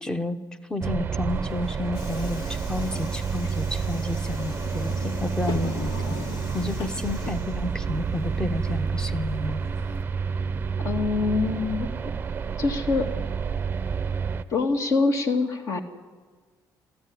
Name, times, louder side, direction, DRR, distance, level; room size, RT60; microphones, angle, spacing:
voice 1, 0.0-0.4 0.7-5.9 6.5-9.6 12.0-12.1, left 2 dB, 10° left, 10 dB, 1.0 m, -31 dB
sound 1, 0.8-14.4, right 6 dB, 25° right, 0.7 m, -29 dB
Subway metro underground, 1.3-10.0, left 3 dB, 75° left, 2.6 m, -39 dB
voice 2, 10.8-11.9 12.6-13.1 14.5-15.8, left 4 dB, 45° left, 6 dB, 2.0 m, -24 dB
28.5 x 14.5 x 9.7 m, 1.5 s
cardioid pair, 165°, 8 cm